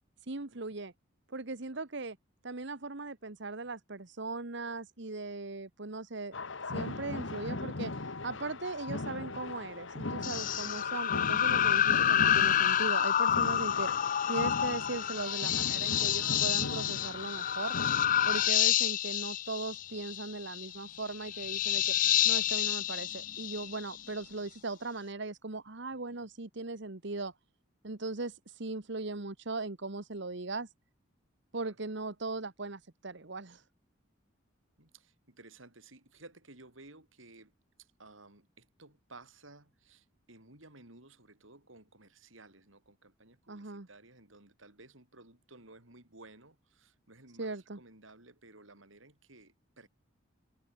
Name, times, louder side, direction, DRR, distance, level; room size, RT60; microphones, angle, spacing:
voice 1, 0.2-0.9 1.3-2.2 2.4-6.3 6.7-17.8 18.2-21.9 22.2-27.3 27.8-30.7 31.5-33.6 43.5-43.9 47.4-47.8, right 3 dB, 60° right, 1.4 m, -39 dB
sound 1, 6.3-18.5, left 2 dB, 65° left, 1.5 m, -39 dB
sound 2, 10.2-24.1, left 10 dB, 40° left, 0.5 m, -29 dB
voice 2, 25.9-26.3 31.6-31.8 34.8-37.5 37.8-49.9, right 2 dB, 75° right, 6.7 m, -56 dB
head